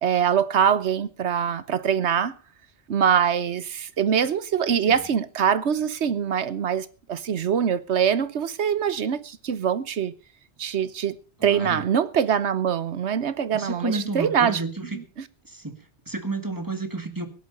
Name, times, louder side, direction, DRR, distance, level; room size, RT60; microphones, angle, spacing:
voice 1, 0.0-2.3 2.9-10.1 10.6-14.6 14.9-15.0, right 8 dB, 75° right, 1.2 m, -23 dB
voice 2, 11.4-11.8 13.5-15.0 15.4-17.3, right 2 dB, 15° right, 2.0 m, -31 dB
16.5 x 11.5 x 5.4 m
omnidirectional pair, 1.2 m